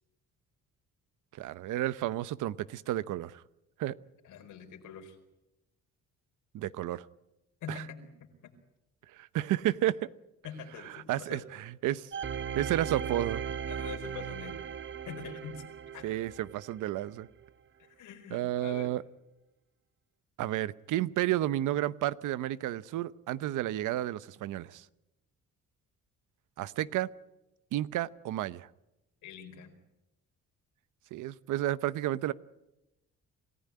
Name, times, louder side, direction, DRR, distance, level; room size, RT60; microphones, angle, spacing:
voice 1, 1.3-3.4 3.8-3.9 6.5-7.0 9.1-10.1 11.1-11.4 11.8-12.1 12.5-13.4 16.0-17.3 18.3-19.0 20.4-24.8 26.6-27.1 27.7-28.7 31.1-32.3, right 14 dB, 85° right, 0.9 m, -31 dB
voice 2, 4.2-5.2 7.6-8.5 10.4-11.5 13.7-14.6 15.1-15.6 15.9-16.1 17.8-18.9 29.2-29.7, left 7 dB, 85° left, 4.6 m, -44 dB
sound 1, 12.1-16.9 17.4-17.5, right 7 dB, 40° right, 1.0 m, -38 dB
27.5 x 15.5 x 9.7 m
cardioid pair, 90°, 30 cm